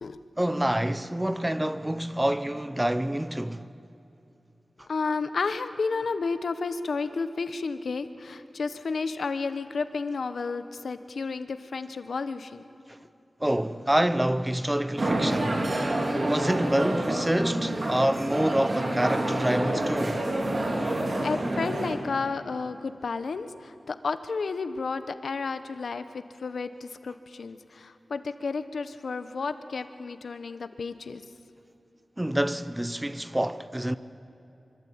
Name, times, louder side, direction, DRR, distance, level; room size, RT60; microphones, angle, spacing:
voice 1, 0.4-3.7 12.9-13.0 13.4-15.8 16.2-20.3 32.2-34.0, right 1 dB, 10° right, 0.8 m, -27 dB
voice 2, 4.9-12.6 19.7-19.8 21.2-31.2, left 4 dB, 80° left, 1.1 m, -32 dB
sound 1, 15.0-22.0, right 1 dB, 45° right, 3.9 m, -28 dB
25.5 x 24.5 x 8.7 m
wide cardioid pair, 110°, 0 cm